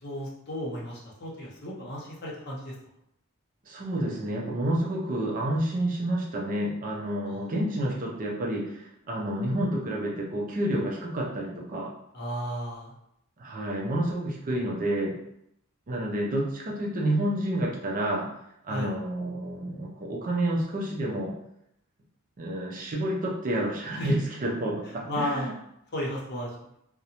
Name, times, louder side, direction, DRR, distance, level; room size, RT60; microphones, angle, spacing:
voice 1, 0.0-2.7 7.2-7.4 12.1-12.9 18.7-18.9 24.0-24.1 25.1-25.5 25.9-26.5, equal, 50° left, -4 dB, 0.6 m, -33 dB
voice 2, 3.7-11.9 13.4-15.2 15.9-18.3 18.6-21.3 22.4-25.5, right 1 dB, 40° right, -2 dB, 0.5 m, -29 dB
2.5 x 2.0 x 2.8 m, 0.77 s
head